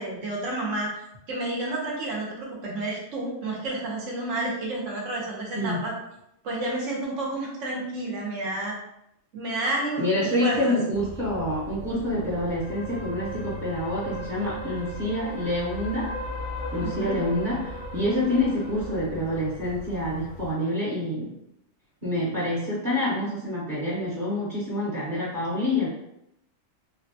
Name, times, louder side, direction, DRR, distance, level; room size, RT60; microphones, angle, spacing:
voice 1, 0.0-5.9 6.4-8.8 9.3-10.8 16.8-17.2, right 2 dB, 75° right, -2 dB, 1.0 m, -30 dB
voice 2, 5.5-5.9 10.0-16.1 16.7-21.4 22.0-25.9, left 1 dB, 40° right, -8 dB, 0.9 m, -27 dB
sound 1, 10.9-20.5, left 1 dB, 75° left, 0.9 m, -37 dB
3.3 x 2.2 x 2.6 m, 0.81 s
omnidirectional pair, 1.3 m